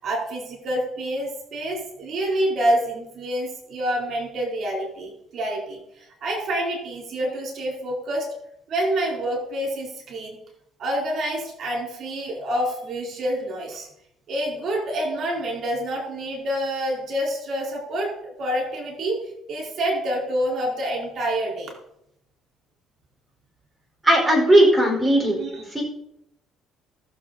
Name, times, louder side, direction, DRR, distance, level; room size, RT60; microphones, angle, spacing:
voice 1, 0.0-8.3 8.7-10.4 10.8-13.9 14.3-21.7 25.2-25.5, right 1 dB, 55° right, -1 dB, 4.4 m, -27 dB
voice 2, 24.0-25.4 25.7-25.8, right 1 dB, 5° right, -2 dB, 4.8 m, -17 dB
19.5 x 7.2 x 4.2 m, 0.78 s
cardioid pair, 95°, 0 cm